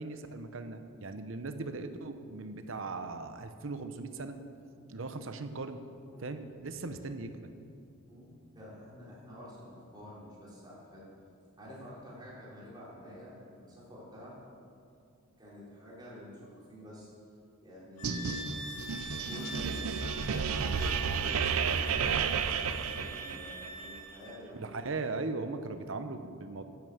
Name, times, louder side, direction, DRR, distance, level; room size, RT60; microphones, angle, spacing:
voice 1, 0.0-4.3 4.9-5.8 6.2-7.5 24.6-26.6, right 3 dB, 60° right, 8 dB, 0.8 m, -38 dB
voice 2, 8.1-11.1 11.6-14.3 15.4-17.1 17.6-18.4 19.0-24.8, equal, 20° right, -7 dB, 4.0 m, -49 dB
sound 1, 18.0-24.4, right 2 dB, 85° left, 2.1 m, -43 dB
sound 2, 18.0-23.7, right 6 dB, 90° right, 0.6 m, -32 dB
10.5 x 9.3 x 7.9 m, 2.4 s
head